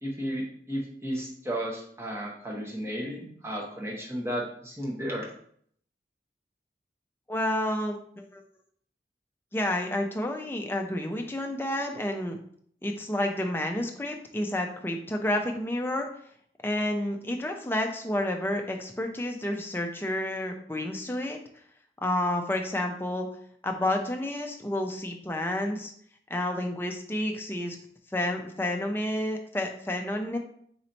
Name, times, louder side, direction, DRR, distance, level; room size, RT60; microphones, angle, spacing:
voice 1, 0.0-5.3, equal, 15° right, -3 dB, 0.9 m, -33 dB
voice 2, 7.3-8.4 9.5-12.4 12.8-16.1 16.6-21.4 22.0-23.3 23.6-25.9 26.3-27.8 28.1-30.4, left 1 dB, 15° left, 3 dB, 0.5 m, -30 dB
4.2 x 3.0 x 3.9 m, 0.62 s
head